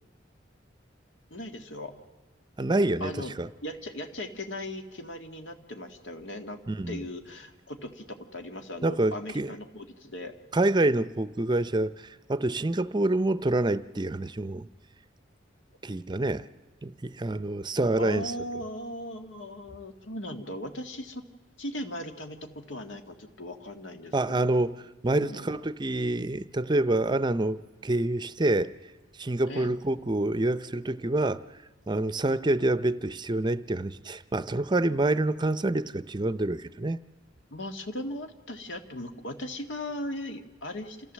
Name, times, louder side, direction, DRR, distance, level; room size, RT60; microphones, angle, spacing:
voice 1, 1.3-1.9 3.0-3.4 3.6-6.6 6.9-10.3 18.0-21.3 21.6-24.5 25.1-25.6 29.5-29.7 37.5-41.1, left 1 dB, 80° left, 1.8 m, -38 dB
voice 2, 2.6-3.5 6.7-7.0 8.8-9.5 10.5-14.7 15.8-16.5 16.8-18.3 24.1-28.7 29.2-31.4 31.9-37.0, right 2 dB, 25° right, 0.6 m, -27 dB
27.5 x 14.5 x 7.4 m
head